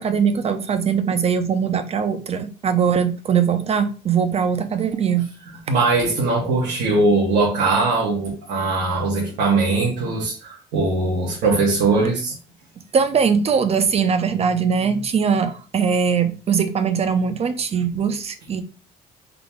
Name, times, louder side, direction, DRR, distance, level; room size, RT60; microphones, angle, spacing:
voice 1, 0.0-5.3 12.9-18.6, right 6 dB, 40° right, 0.7 m, -21 dB
voice 2, 5.7-12.3, right 3 dB, 90° right, 1.3 m, -20 dB
3.9 x 2.9 x 3.5 m
cardioid pair, 110°, 17 cm